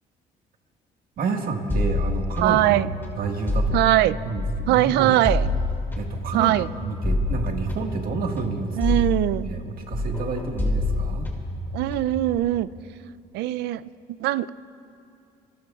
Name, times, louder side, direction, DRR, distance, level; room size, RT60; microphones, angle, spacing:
voice 1, 1.2-2.9 3.2-3.8 4.3-5.1 5.9-9.0 9.4-11.3, right 4 dB, 60° right, 3 dB, 1.6 m, -29 dB
sound 1, 1.7-4.8 5.2-9.7 9.9-12.4, left 2 dB, 15° left, 2.2 m, -28 dB
voice 2, 2.4-2.9 3.7-4.2 4.7-5.5 6.3-6.7 8.8-9.5 11.7-12.7 13.3-13.8 14.2-14.5, right 15 dB, 80° right, 16 dB, 0.4 m, -21 dB
26.0 x 19.5 x 2.4 m, 2.6 s
cardioid pair, 110°, 17 cm